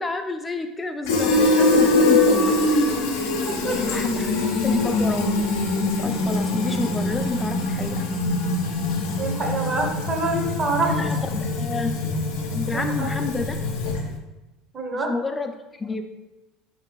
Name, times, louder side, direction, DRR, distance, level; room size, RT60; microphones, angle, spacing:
voice 1, 0.0-2.6 3.9-5.4 6.0-8.1 10.9-11.9 12.5-13.6 14.9-16.0, left 3 dB, 20° left, 6 dB, 0.4 m, -29 dB
Fill (with liquid), 1.1-14.2, left 2 dB, 80° left, 0.5 m, -23 dB
voice 2, 3.5-4.1 9.2-11.0 12.7-13.1 14.7-15.1, right 2 dB, 35° right, 1 dB, 0.8 m, -26 dB
3.3 x 2.6 x 2.9 m, 1.0 s
hypercardioid pair, 80°, 0 cm